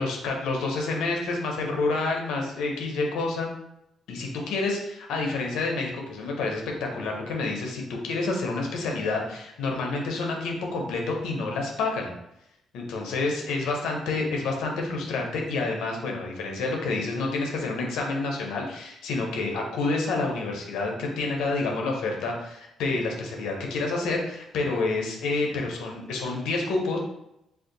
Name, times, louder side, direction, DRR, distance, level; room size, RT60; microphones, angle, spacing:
voice 1, 0.0-3.5 4.1-12.1 12.7-27.0, left 3 dB, 85° left, 0 dB, 0.6 m, -28 dB
2.6 x 2.3 x 3.7 m, 0.83 s
cardioid pair, 90°, 0 cm